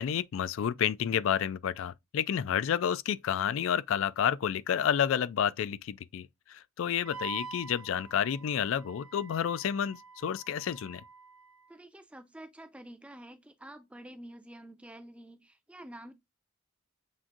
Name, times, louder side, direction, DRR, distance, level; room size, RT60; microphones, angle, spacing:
voice 1, 0.0-11.0, left 8 dB, 65° left, 0.3 m, -30 dB
Wind instrument woodwind instrument, 7.0-11.7, right 4 dB, 65° right, 0.8 m, -46 dB
voice 2, 11.7-16.1, right 1 dB, 5° right, 0.4 m, -48 dB
7.2 x 2.6 x 2.4 m
head